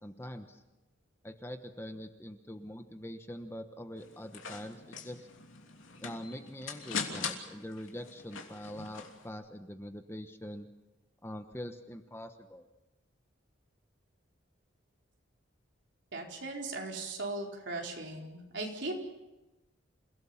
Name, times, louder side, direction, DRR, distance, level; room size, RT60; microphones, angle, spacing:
voice 1, 0.0-0.6 1.2-5.3 6.0-10.7 11.2-12.6, equal, 10° left, 7 dB, 1.1 m, -44 dB
sound 1, 4.0-9.3, left 5 dB, 85° left, 3.1 m, -41 dB
voice 2, 16.1-18.9, right 2 dB, 65° right, 0 dB, 4.5 m, -38 dB
28.5 x 17.0 x 7.3 m, 1.0 s
head